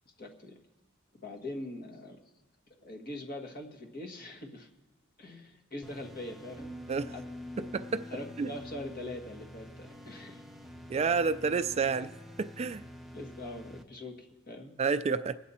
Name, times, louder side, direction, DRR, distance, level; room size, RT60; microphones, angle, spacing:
voice 1, 0.2-0.5 1.2-2.2 2.8-4.7 5.2-6.7 7.1-7.2 7.5-7.6 8.1-10.4 13.1-14.7, left 1 dB, 45° left, 2 dB, 1.7 m, -42 dB
sound 1, 5.8-13.8, equal, ahead, 0.7 m, -49 dB
sound 2, 6.6-12.8, left 1 dB, 20° left, 5.1 m, -50 dB
voice 2, 7.6-8.0 8.4-8.5 10.9-12.1 12.4-12.8 14.8-15.4, right 5 dB, 30° right, 12 dB, 0.3 m, -29 dB
24.5 x 8.3 x 4.3 m, 1.2 s
head